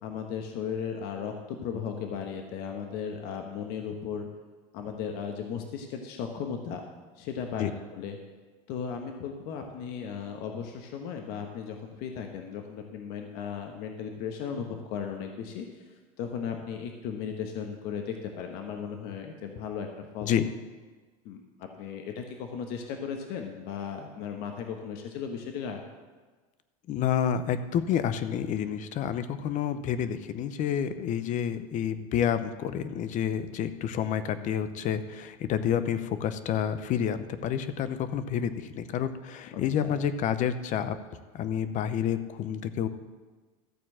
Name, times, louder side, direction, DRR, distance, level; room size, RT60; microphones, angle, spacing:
voice 1, 0.0-4.3 4.7-6.8 7.2-8.2 8.7-15.8 16.2-20.3 21.2-25.8 39.5-40.0, left 7 dB, 60° left, 4 dB, 1.2 m, -36 dB
voice 2, 26.9-41.0 41.3-42.9, left 9 dB, 45° left, 12 dB, 0.8 m, -29 dB
13.5 x 4.5 x 7.3 m, 1.4 s
supercardioid pair, 115°, 18 cm